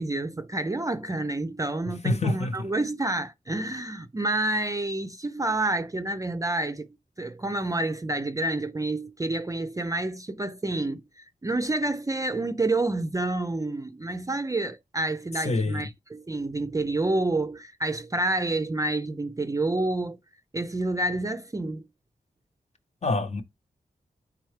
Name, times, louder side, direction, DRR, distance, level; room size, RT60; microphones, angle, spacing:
voice 1, 0.0-6.9 7.2-20.2 20.5-21.8, right 2 dB, 20° right, 0.4 m, -28 dB
voice 2, 2.0-2.7 15.5-15.8 23.0-23.4, left 2 dB, 45° left, 0.7 m, -26 dB
4.4 x 3.5 x 3.1 m
wide cardioid pair, 75°, 16 cm